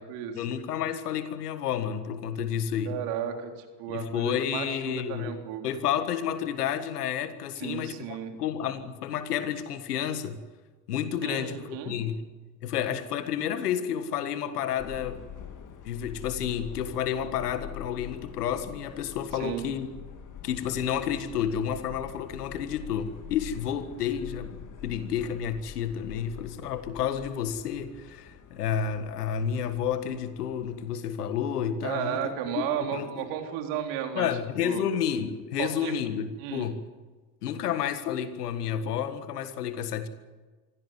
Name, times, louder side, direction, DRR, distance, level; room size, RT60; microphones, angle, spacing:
voice 1, 0.3-3.0 3.9-5.4 5.6-10.4 10.9-12.3 12.6-15.2 15.9-19.9 20.4-33.3 34.2-36.8 37.4-40.1, left 8 dB, 85° left, 1.8 m, -30 dB
voice 2, 2.9-3.5 3.8-5.6 7.6-8.3 11.2-12.0 19.4-19.7 31.8-34.3 34.6-34.8 35.6-35.9 36.4-36.7, right 9 dB, 70° right, 3.8 m, -33 dB
Subway metro underground, 14.8-30.9, left 9 dB, 40° left, 2.9 m, -45 dB
24.5 x 16.0 x 9.6 m
hypercardioid pair, 60°, 45 cm